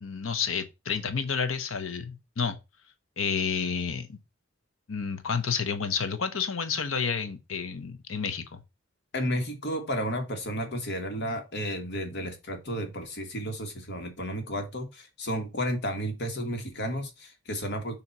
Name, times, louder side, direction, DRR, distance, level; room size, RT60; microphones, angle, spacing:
voice 1, 0.0-2.6 3.2-4.2 4.9-8.6, left 6 dB, 85° left, 0.8 m, -30 dB
voice 2, 9.1-18.0, equal, 60° left, 1.6 m, -32 dB
6.9 x 2.9 x 5.8 m
head